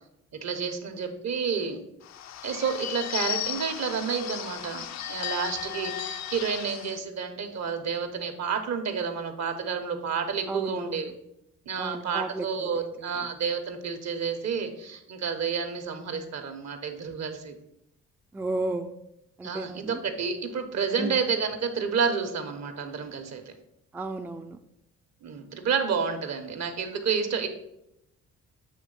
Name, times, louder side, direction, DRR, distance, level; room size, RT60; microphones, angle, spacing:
voice 1, 0.4-1.8 2.4-11.1 11.6-17.5 19.4-23.4 25.2-27.5, right 6 dB, 60° right, 6 dB, 1.1 m, -30 dB
Bird / Bell, 2.0-7.0, left 11 dB, 65° left, 0.5 m, -35 dB
voice 2, 10.5-11.1 11.8-13.1 18.3-18.9 19.4-20.0 21.0-21.2 23.9-24.6, right 2 dB, 5° right, 6 dB, 0.3 m, -34 dB
7.6 x 3.2 x 5.4 m, 0.83 s
cardioid pair, 90°, 30 cm